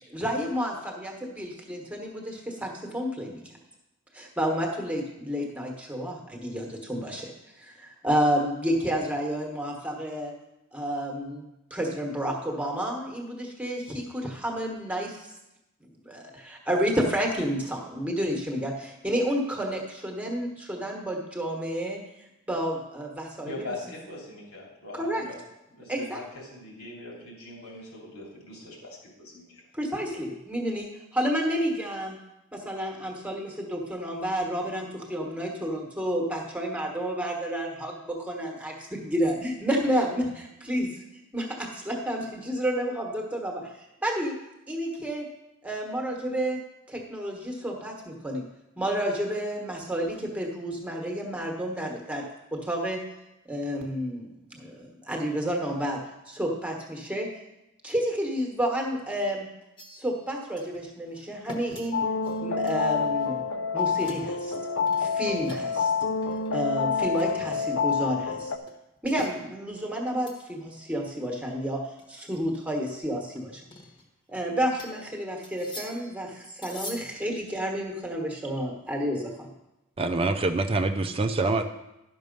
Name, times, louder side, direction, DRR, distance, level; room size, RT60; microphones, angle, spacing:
voice 1, 0.1-3.4 4.1-7.3 7.6-10.3 10.7-15.3 16.0-22.0 22.5-23.5 24.9-25.3 25.9-26.2 29.7-32.2 32.5-40.9 41.3-44.4 44.7-45.3 45.6-46.6 46.9-48.5 48.8-53.0 53.5-57.3 57.8-59.5 60.0-62.0 62.4-63.4 63.7-64.5 65.0-65.9 66.5-68.5 69.0-71.8 72.1-73.6 74.3-79.5, equal, 5° right, 0 dB, 1.3 m, -30 dB
voice 2, 23.4-25.4 25.7-29.6, left 2 dB, 85° left, -2 dB, 3.0 m, -41 dB
sound 1, 59.8-60.3 60.6-60.8 61.2-63.5 63.8-64.3 64.9-65.9 66.2-66.5 66.9-67.8 68.7-69.4 69.8-70.4 70.8-70.9 71.2-71.3 72.0-72.4 73.4-74.4 74.8-75.1 75.4-76.2 76.6-77.2, left 1 dB, 20° left, 1.2 m, -45 dB
sound 2, 61.9-68.6, left 5 dB, 60° left, 0.5 m, -27 dB
voice 3, 80.0-81.6, right 3 dB, 25° right, 7 dB, 0.5 m, -25 dB
11.0 x 6.1 x 5.3 m, 0.92 s
head